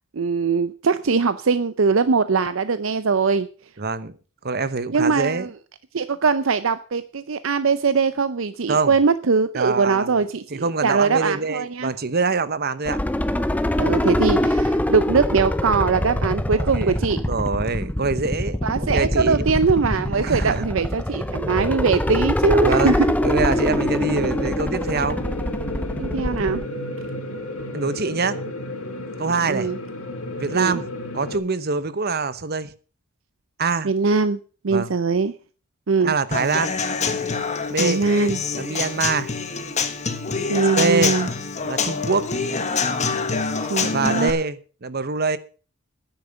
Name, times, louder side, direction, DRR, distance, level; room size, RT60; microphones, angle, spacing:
voice 1, 0.1-3.5 4.9-5.5 5.9-11.9 13.8-17.2 18.6-23.2 26.0-26.6 29.5-29.8 30.5-30.8 33.8-34.4 34.6-35.3 35.9-36.1 37.8-38.4 40.5-41.3 43.7-44.3, right 4 dB, 65° right, 0.6 m, -21 dB
voice 2, 3.8-4.1 4.4-5.5 8.7-8.9 9.5-10.2 10.5-13.0 16.5-19.5 20.2-20.6 22.5-25.2 27.7-28.4 29.2-29.7 30.4-30.8 31.1-32.7 33.6-33.9 34.7-34.9 36.0-36.7 37.7-38.0 38.5-39.3 40.8-41.1 41.6-42.3 43.9-45.4, right 4 dB, 45° right, 0.9 m, -24 dB
sound 1, 12.9-26.6, left 1 dB, 5° left, 0.6 m, -24 dB
sound 2, 23.3-31.4, left 1 dB, 85° left, 2.8 m, -32 dB
Human voice / Acoustic guitar / Drum, 36.3-44.3, left 4 dB, 35° left, 1.3 m, -26 dB
10.5 x 8.7 x 6.9 m
head